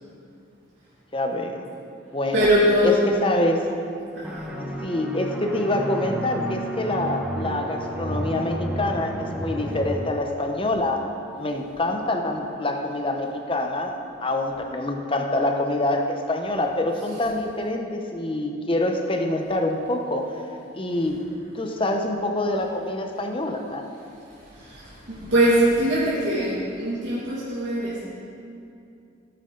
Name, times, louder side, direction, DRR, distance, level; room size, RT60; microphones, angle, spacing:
voice 1, 1.1-1.7 2.1-2.5 2.8-3.7 4.6-11.1 11.4-20.4 20.7-23.9, left 1 dB, 25° left, 4 dB, 0.9 m, -26 dB
voice 2, 2.3-3.2 4.1-4.6 17.0-17.2 20.9-21.1 24.3-28.0, equal, 65° right, -9 dB, 2.5 m, -22 dB
sound 1, 4.2-10.0, right 1 dB, 5° right, 1.0 m, -31 dB
16.0 x 8.9 x 3.9 m, 2.6 s
head